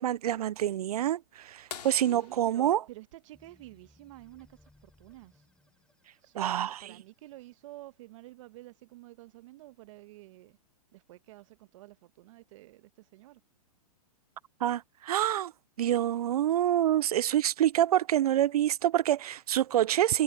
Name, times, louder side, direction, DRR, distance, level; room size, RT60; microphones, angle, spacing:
voice 1, 0.0-2.8 6.4-6.7 14.6-15.5 15.8-20.2, right 12 dB, 75° right, 0.5 m, -26 dB
sound 1, 1.7-4.1 6.1-6.2 8.4-8.5 10.2-10.5 11.3-11.4, left 7 dB, 85° left, 3.5 m, -47 dB
voice 2, 2.0-5.4 6.2-10.6 10.9-13.4, right 17 dB, 55° right, 1.5 m, -50 dB
sound 2, 3.3-7.7, left 2 dB, 5° left, 4.8 m, -64 dB
hypercardioid pair, 120°, 20 cm